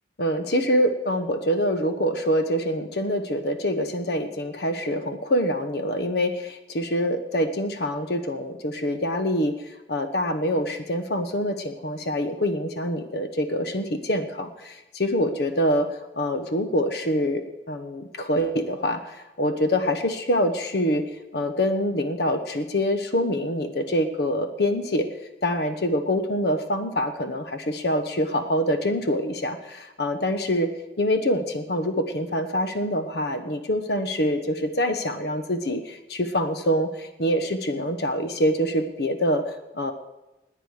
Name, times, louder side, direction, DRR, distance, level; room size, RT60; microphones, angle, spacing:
voice 1, 0.2-21.0 21.3-25.1 25.4-30.7 31.0-39.4 39.7-39.9, equal, 65° left, 8 dB, 1.0 m, -25 dB
19.5 x 8.9 x 4.9 m, 1.0 s
head